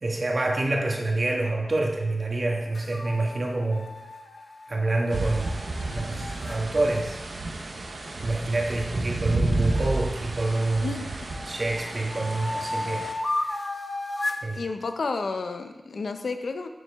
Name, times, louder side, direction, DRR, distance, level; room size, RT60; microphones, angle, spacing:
voice 1, 0.0-3.9 4.7-5.6 5.9-7.2 8.2-11.0 11.5-13.1 13.4-13.6 14.4-14.6, right 2 dB, 55° right, 1 dB, 1.5 m, -27 dB
sound 1, 2.7-6.6 9.5-10.8 11.3-14.5, left 2 dB, 40° left, 0.9 m, -34 dB
sound 2, 5.1-13.1, right 2 dB, 85° right, 1.1 m, -31 dB
voice 2, 14.6-16.7, left 4 dB, 85° left, 7 dB, 0.6 m, -31 dB
10.5 x 7.1 x 3.6 m, 1.1 s
wide cardioid pair, 75°, 0 cm